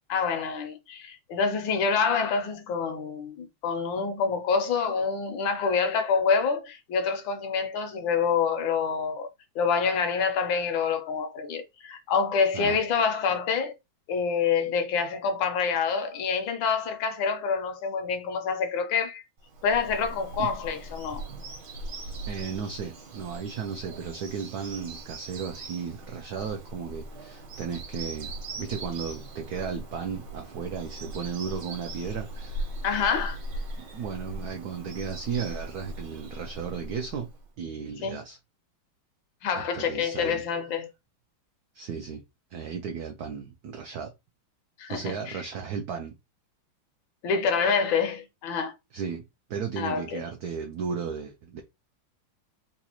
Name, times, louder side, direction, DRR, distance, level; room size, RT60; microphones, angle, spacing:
voice 1, 0.1-9.3 9.5-13.7 14.1-19.2 19.6-21.3 32.8-33.4 38.0-38.2 39.4-40.9 44.8-45.4 47.2-48.7 49.8-50.2, left 5 dB, 75° left, 1.3 m, -27 dB
Bird vocalization bird call bird song, 19.5-37.5, right 1 dB, 70° right, 1.7 m, -40 dB
voice 2, 22.3-32.6 33.9-37.3 37.6-38.4 39.5-40.4 41.7-42.2 42.5-44.1 44.9-46.1 48.9-49.2 49.5-51.6, right 6 dB, 90° right, 0.8 m, -35 dB
4.0 x 2.3 x 2.9 m
omnidirectional pair, 2.2 m